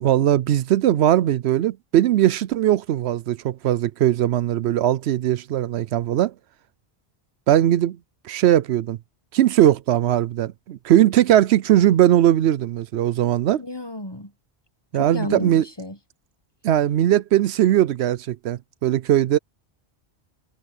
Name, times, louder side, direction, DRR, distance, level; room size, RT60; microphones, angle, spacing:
voice 1, 0.0-6.3 7.5-8.0 8.2-9.0 9.3-13.6 14.9-15.6 16.6-19.4, right 12 dB, 80° right, 0.8 m, -19 dB
voice 2, 13.6-14.3 14.9-16.0, left 1 dB, 25° left, 1.1 m, -31 dB
omnidirectional pair, 1.1 m